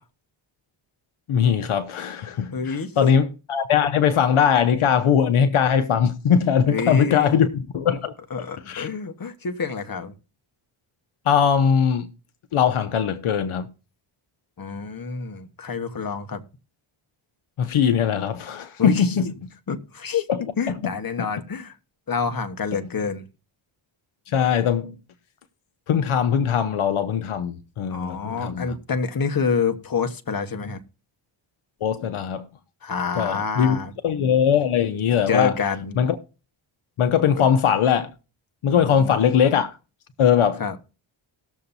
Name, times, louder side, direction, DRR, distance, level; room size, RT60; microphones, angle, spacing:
voice 1, 1.3-8.1 8.7-8.9 11.3-12.1 12.5-13.7 17.6-19.2 20.3-20.4 20.7-20.9 24.3-24.9 25.9-28.7 31.8-32.5 33.2-35.5 36.0-36.2 37.0-38.1 38.6-39.8 40.2-40.6, left 8 dB, 80° left, 0.9 m, -21 dB
voice 2, 2.5-3.1 6.7-7.3 8.3-10.1 14.6-16.4 18.8-19.3 19.7-20.3 20.6-21.8 22.1-23.2 27.9-30.8 32.8-33.9 35.3-35.9 37.4-37.5 38.7-39.2 40.6-40.8, left 5 dB, 45° left, 1.3 m, -27 dB
19.0 x 7.0 x 2.7 m
cardioid pair, 70°, 49 cm